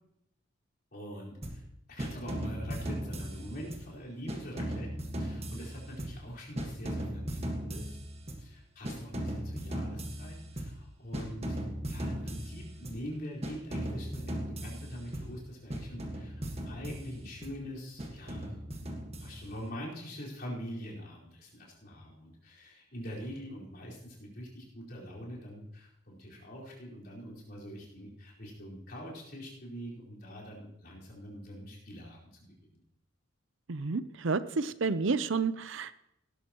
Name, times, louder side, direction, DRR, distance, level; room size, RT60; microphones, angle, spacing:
voice 1, 0.9-1.6 1.9-4.9 5.2-8.0 8.4-11.6 11.9-16.3 16.6-32.8, equal, 50° left, -5 dB, 4.6 m, -44 dB
sound 1, 1.4-1.7 2.0-3.9 4.3-6.3 6.6-8.5 8.8-10.8 11.1-13.1 13.4-15.4 15.7-17.6 18.0-19.6, equal, 30° right, 1.6 m, -38 dB
voice 2, 33.7-36.0, right 4 dB, 70° right, 15 dB, 0.6 m, -30 dB
18.0 x 11.5 x 3.0 m, 0.80 s
head